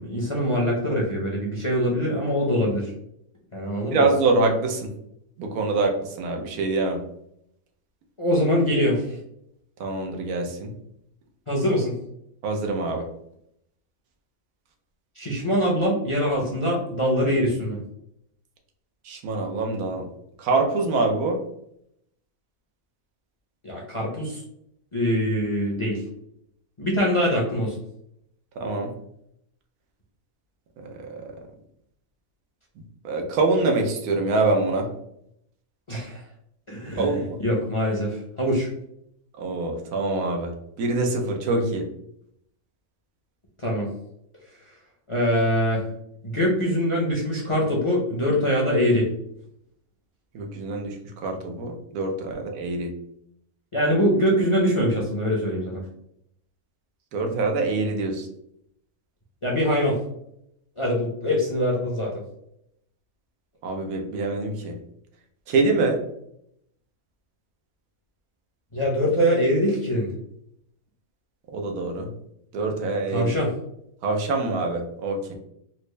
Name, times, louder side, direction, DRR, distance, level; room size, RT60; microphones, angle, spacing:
voice 1, 0.0-2.9 3.5-4.0 8.2-9.2 11.5-11.9 15.2-17.8 23.6-24.4 24.9-26.0 26.8-27.8 35.9-36.2 36.7-38.7 43.6-43.9 45.1-45.8 46.2-49.1 53.7-55.8 59.4-60.0 60.8-62.2 68.7-70.1 73.1-73.5, equal, 35° left, -3 dB, 0.5 m, -23 dB
voice 2, 3.9-4.9 5.4-7.0 9.8-10.7 12.4-13.1 19.0-20.1 20.4-21.4 28.6-28.9 31.1-31.2 33.0-34.9 37.0-37.4 39.4-40.5 40.8-41.8 50.3-52.9 57.1-58.3 63.6-64.8 65.5-66.0 71.5-72.1 72.5-73.3 74.0-75.4, right 3 dB, 90° right, 2 dB, 1.2 m, -25 dB
4.1 x 2.1 x 3.1 m, 0.75 s
omnidirectional pair, 1.5 m